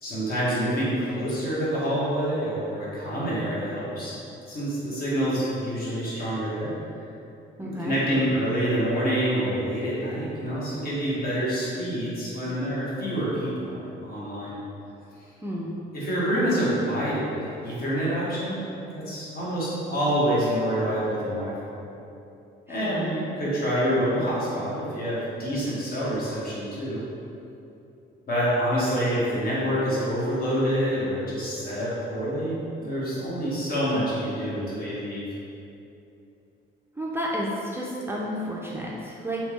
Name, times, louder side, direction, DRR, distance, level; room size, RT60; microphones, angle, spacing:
voice 1, 0.0-4.1 4.5-6.7 7.6-14.6 15.9-18.6 18.9-21.7 22.7-27.0 28.3-35.2, equal, 50° left, -8 dB, 1.2 m, -27 dB
voice 2, 7.6-8.0 15.4-15.7 22.7-23.1 37.0-39.4, equal, 10° right, -5 dB, 0.4 m, -31 dB
3.3 x 2.8 x 3.1 m, 2.8 s
cardioid pair, 90°, 20 cm